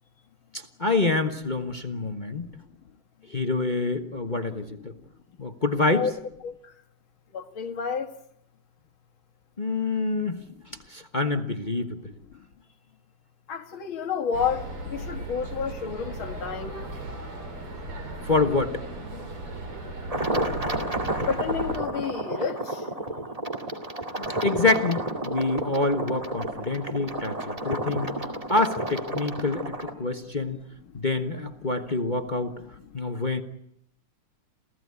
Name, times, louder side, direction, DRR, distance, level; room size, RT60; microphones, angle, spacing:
voice 1, 0.5-2.5 3.3-4.9 5.4-6.1 9.6-10.4 10.9-12.1 18.2-18.8 24.2-28.1 28.5-30.6 30.9-32.6 32.9-33.4, left 3 dB, 25° left, 1.1 m, -26 dB
voice 2, 7.3-8.1 13.5-14.6 14.9-16.8 21.3-22.6, left 6 dB, 65° left, 2.6 m, -29 dB
sound 1, 14.3-21.8, right 2 dB, 85° right, 5.3 m, -37 dB
sound 2, 20.1-29.9, right 1 dB, 15° right, 2.1 m, -31 dB
28.0 x 17.0 x 9.6 m
omnidirectional pair, 2.4 m